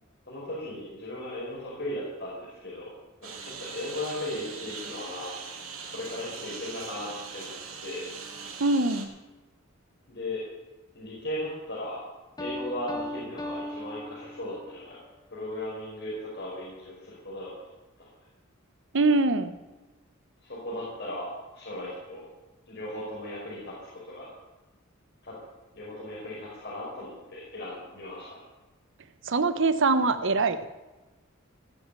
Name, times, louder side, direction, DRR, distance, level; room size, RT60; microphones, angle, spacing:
voice 1, 0.3-2.9 3.4-5.3 5.9-7.5 7.8-8.1 10.1-10.4 10.9-12.0 12.4-15.0 15.3-17.5 18.0-18.1 20.4-22.2 22.7-24.3 25.2-25.3 25.7-28.4, left 1 dB, 55° left, -7 dB, 5.3 m, -37 dB
Engine, 3.2-9.1, right 5 dB, 85° right, 2.9 m, -41 dB
voice 2, 8.6-9.1 18.9-19.6 29.2-30.7, right 3 dB, 65° right, 12 dB, 1.0 m, -23 dB
Piano, 12.4-14.8, left 1 dB, 20° left, 1.4 m, -38 dB
19.0 x 6.4 x 9.1 m, 1.1 s
head